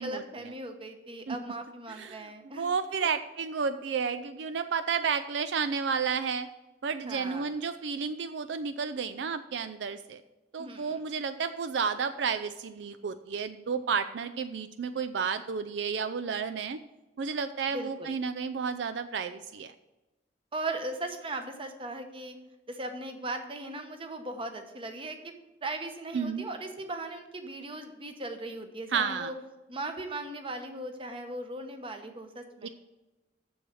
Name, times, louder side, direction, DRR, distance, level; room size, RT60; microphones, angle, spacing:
voice 1, 0.0-2.7 3.0-3.1 7.0-7.5 10.6-11.0 17.7-18.1 20.5-22.4 22.7-25.3 25.6-29.3 29.7-32.7, right 2 dB, 30° right, 6 dB, 1.0 m, -38 dB
voice 2, 2.0-2.3 2.5-6.5 6.8-10.2 10.5-16.8 17.2-19.7 26.1-26.4 28.9-29.3 32.6-32.7, right 6 dB, 75° right, 11 dB, 0.4 m, -31 dB
7.0 x 7.0 x 6.3 m, 1.0 s
head